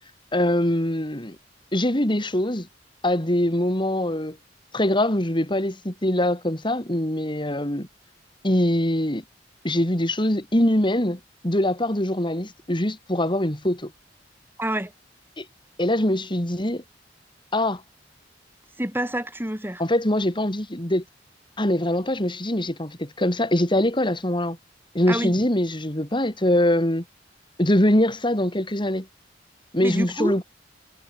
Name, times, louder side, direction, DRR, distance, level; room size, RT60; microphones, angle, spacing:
voice 1, 0.3-1.4 1.7-2.7 3.0-4.4 4.7-7.9 8.4-9.2 9.6-13.9 15.4-15.5 15.8-16.8 17.5-17.8 19.8-21.0 21.6-24.6 24.9-27.0 27.6-29.1 29.7-30.4, left 1 dB, 25° left, 3.3 m, -23 dB
voice 2, 14.6-14.9 18.8-19.8 25.1-25.3 29.8-30.3, right 1 dB, 10° right, 5.3 m, -27 dB
head